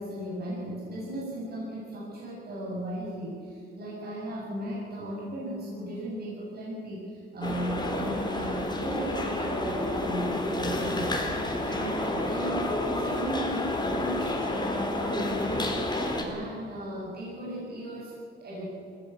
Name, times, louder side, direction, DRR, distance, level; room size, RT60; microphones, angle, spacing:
voice 1, 0.0-15.8 16.1-18.7, right 1 dB, 55° right, -5 dB, 7.8 m, -36 dB
sound 1, 7.4-16.2, left 1 dB, 20° left, 4.0 m, -30 dB
21.5 x 17.5 x 8.4 m, 2.3 s
cardioid pair, 90°, 20 cm